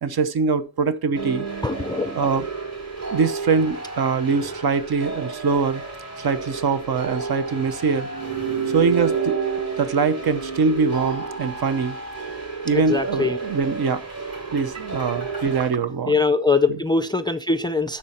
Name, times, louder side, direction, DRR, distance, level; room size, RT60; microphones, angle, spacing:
voice 1, 0.0-1.4 2.1-2.5 3.1-5.8 6.2-8.1 8.7-9.4 9.8-12.0 12.6-14.0 14.5-16.2 16.7-16.8, right 5 dB, 60° right, 0.9 m, -23 dB
sound 1, 1.1-15.7, right 5 dB, 35° right, 6.0 m, -30 dB
voice 2, 1.6-2.1 12.9-13.4 16.1-18.0, left 4 dB, 10° left, 0.4 m, -22 dB
12.0 x 4.6 x 4.2 m
wide cardioid pair, 140°, 43 cm